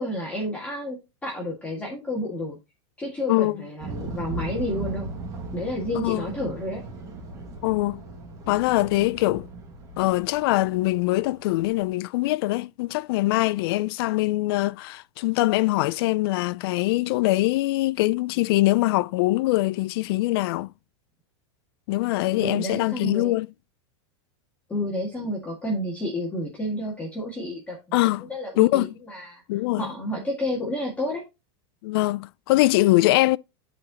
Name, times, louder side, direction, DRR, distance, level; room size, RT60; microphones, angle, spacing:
voice 1, 0.0-2.6 3.0-5.1 5.5-6.8 22.4-23.3 24.7-27.8 28.3-29.4 29.8-31.2, left 1 dB, 10° left, 1.8 m, -30 dB
voice 2, 3.3-3.6 5.9-6.3 7.6-8.0 8.5-9.5 10.0-20.7 21.9-23.5 27.9-28.3 28.6-28.9 29.5-29.9 31.8-33.4, left 19 dB, 55° left, 0.4 m, -23 dB
sound 1, 3.8-11.8, right 2 dB, 25° right, 1.7 m, -37 dB
11.0 x 4.4 x 2.8 m
supercardioid pair, 155°, 15 cm